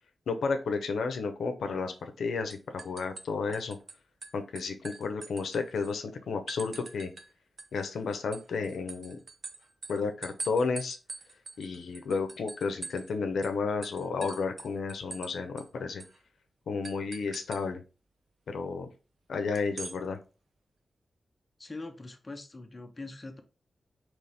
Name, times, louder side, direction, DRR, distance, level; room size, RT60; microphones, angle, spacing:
voice 1, 0.3-3.8 4.3-7.1 7.7-9.2 9.9-11.0 11.6-16.0 16.7-17.8 18.5-18.9 19.3-20.2, left 4 dB, 85° left, 7 dB, 0.6 m, -32 dB
sound 1, 1.9-2.2 2.5-3.9 4.2-5.9 6.5-7.3 7.6-13.1 13.4-13.5 13.8-15.3 15.6-15.7 16.0-16.2 16.8-17.6 19.5-20.0, right 3 dB, 45° right, 0.6 m, -43 dB
voice 2, 21.6-23.4, left 2 dB, 20° left, 5 dB, 0.6 m, -42 dB
4.2 x 3.0 x 3.3 m, 0.32 s
wide cardioid pair, 140°, 0 cm